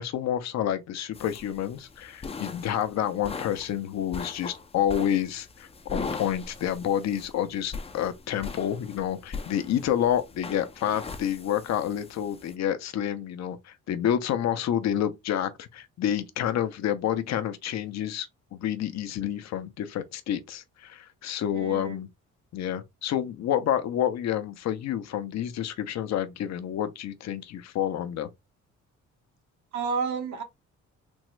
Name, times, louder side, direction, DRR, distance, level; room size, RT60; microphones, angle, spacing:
voice 1, 0.0-22.1 22.5-28.3, left 10 dB, 60° left, 0.6 m, -29 dB
sound 1, 1.1-12.6, left 4 dB, 20° left, 0.4 m, -40 dB
voice 2, 21.5-22.0 29.7-30.4, right 5 dB, 70° right, 0.9 m, -30 dB
3.5 x 2.0 x 3.1 m
cardioid pair, 90°, 30 cm